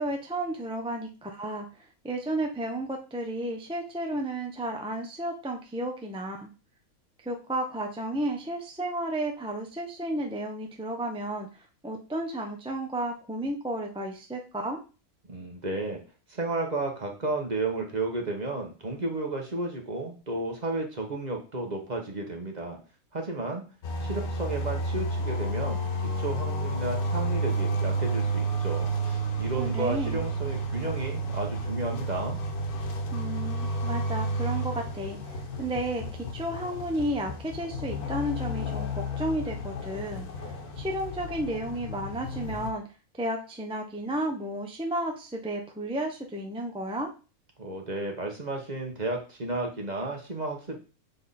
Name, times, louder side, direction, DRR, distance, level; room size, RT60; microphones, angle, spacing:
voice 1, 0.0-1.7 2.0-6.5 7.2-11.5 11.8-14.8 29.6-30.2 33.1-36.0 36.3-42.8 43.2-47.1, right 1 dB, 5° right, 2 dB, 0.4 m, -32 dB
voice 2, 15.3-16.0 16.3-22.8 23.1-23.6 24.0-32.4 47.6-50.8, right 2 dB, 30° right, 2 dB, 1.3 m, -33 dB
sound 1, 23.8-42.7, right 1 dB, 85° left, 1.5 m, -31 dB
6.7 x 3.7 x 4.2 m, 0.34 s
omnidirectional pair, 1.6 m